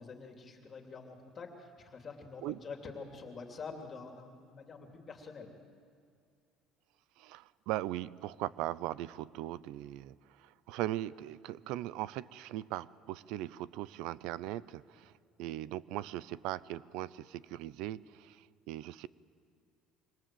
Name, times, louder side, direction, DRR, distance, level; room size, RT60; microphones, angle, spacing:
voice 1, 0.0-5.5, left 4 dB, 30° left, 3 dB, 2.8 m, -46 dB
voice 2, 7.2-10.1 10.4-15.1 15.4-19.1, right 14 dB, 80° right, 19 dB, 0.6 m, -39 dB
27.0 x 25.0 x 7.6 m, 2.3 s
cardioid pair, 135°, 0 cm